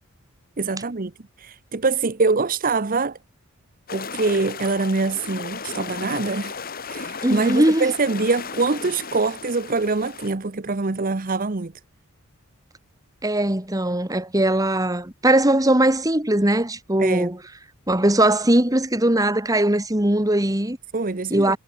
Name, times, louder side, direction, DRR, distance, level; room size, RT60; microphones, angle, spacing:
voice 1, 0.6-1.1 1.4-3.2 3.9-6.5 6.9-11.7 17.0-17.3 20.9-21.5, right 3 dB, 40° right, 0.8 m, -24 dB
sound 1, 3.9-10.3, left 5 dB, 45° left, 2.2 m, -35 dB
voice 2, 7.2-7.9 13.2-17.4 17.9-20.8 21.3-21.6, right 1 dB, 15° right, 2.0 m, -20 dB
head